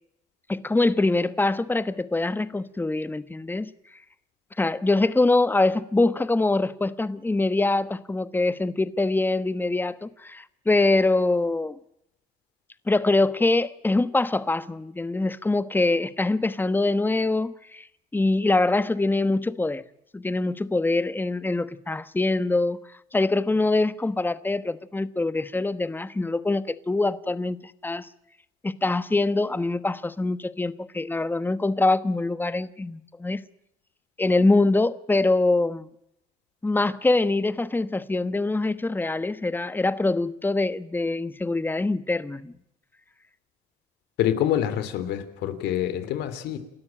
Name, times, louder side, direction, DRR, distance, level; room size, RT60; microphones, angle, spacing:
voice 1, 0.5-3.7 4.6-11.8 12.9-17.9 18.1-19.8 20.1-22.8 23.1-28.1 28.6-33.4 34.2-35.9 36.6-42.5, left 2 dB, 10° left, 1.2 m, -24 dB
voice 2, 44.2-46.6, left 11 dB, 85° left, 3.1 m, -26 dB
29.0 x 13.5 x 8.9 m
cardioid pair, 110°, 17 cm